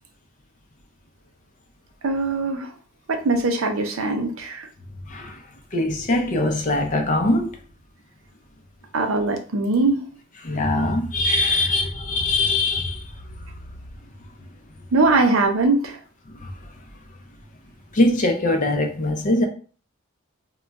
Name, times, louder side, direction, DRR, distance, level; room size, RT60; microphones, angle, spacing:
voice 1, 2.0-2.7 3.1-4.7 8.9-10.0 11.3-11.5 14.9-15.9, right 3 dB, 80° right, 0.6 m, -21 dB
voice 2, 5.1-5.4 5.7-7.6 10.4-13.0 16.4-16.5 17.9-19.5, left 2 dB, 40° left, 0.5 m, -22 dB
2.3 x 2.2 x 3.9 m
head